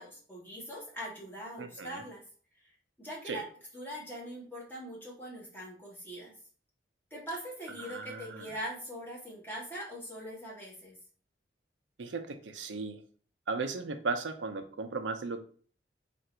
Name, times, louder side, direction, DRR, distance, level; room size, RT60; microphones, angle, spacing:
voice 1, 0.0-2.2 2.6-2.7 3.0-3.4 3.7-6.3 7.1-11.0, equal, 10° left, -4 dB, 1.3 m, -42 dB
voice 2, 1.6-2.0 3.3-3.4 7.8-8.5 12.0-13.0 13.5-15.4, right 4 dB, 90° right, 8 dB, 0.6 m, -36 dB
3.8 x 2.5 x 4.4 m, 0.43 s
head